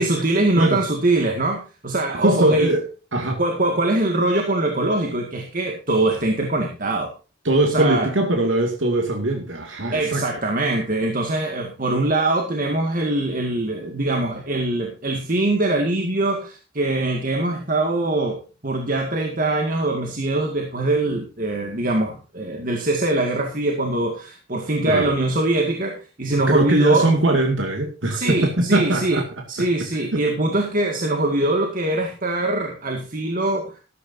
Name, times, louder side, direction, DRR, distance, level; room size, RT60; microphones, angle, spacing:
voice 1, 0.0-2.7 3.4-7.1 7.7-8.1 9.9-27.1 28.1-29.2 29.5-33.7, right 2 dB, 45° right, 2 dB, 2.1 m, -22 dB
voice 2, 2.1-2.8 3.1-3.4 7.4-10.3 24.9-25.1 26.3-29.2 30.1-30.2, right 2 dB, 90° right, 3 dB, 2.3 m, -21 dB
13.5 x 13.5 x 2.8 m, 0.33 s
head